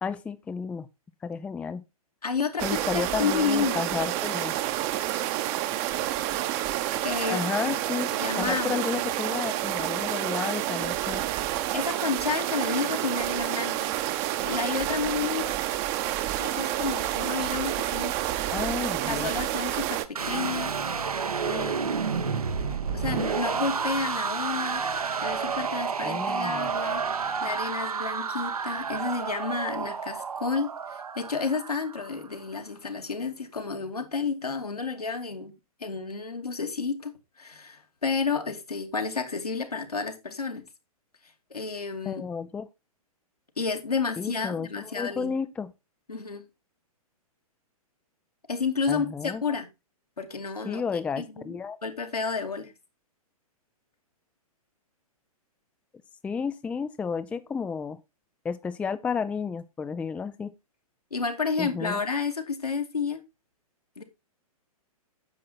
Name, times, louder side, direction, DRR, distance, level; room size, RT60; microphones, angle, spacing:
voice 1, 0.0-0.9 1.2-1.8 2.6-4.5 7.3-11.2 18.5-19.3 26.0-26.7 42.1-42.7 44.2-45.7 48.9-49.4 50.6-51.8 56.2-58.0 58.4-60.5 61.6-62.0, left 6 dB, 5° left, 0.5 m, -32 dB
voice 2, 2.2-2.7 2.9-3.8 7.0-7.8 8.1-8.8 11.7-15.5 16.4-18.1 19.1-20.7 21.4-22.2 22.9-24.8 25.2-27.0 27.4-35.5 35.8-37.1 37.4-40.6 41.5-42.2 43.6-45.3 46.1-46.4 48.5-49.7 50.2-50.8 51.2-52.7 61.1-63.2 64.0-64.1, left 5 dB, 85° left, 2.6 m, -31 dB
sound 1, 2.6-20.1, right 13 dB, 30° right, 1.1 m, -29 dB
sound 2, 20.2-32.2, right 6 dB, 75° right, 1.4 m, -30 dB
9.9 x 7.4 x 4.2 m
figure-of-eight pair, 120°, 19 cm